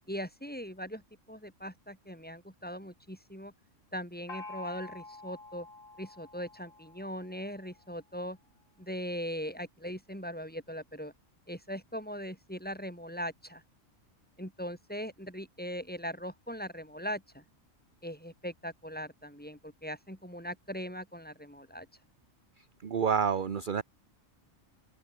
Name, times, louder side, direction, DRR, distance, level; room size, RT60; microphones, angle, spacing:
voice 1, 0.1-1.0 1.3-3.5 3.9-5.7 6.0-8.4 8.8-11.1 11.5-13.6 14.4-17.4 18.0-21.9, equal, 5° left, 5.9 m, -40 dB
Gong, 4.3-7.8, left 3 dB, 80° left, 4.6 m, -48 dB
voice 2, 22.8-23.8, right 7 dB, 45° right, 1.0 m, -28 dB
open air
omnidirectional pair, 1.4 m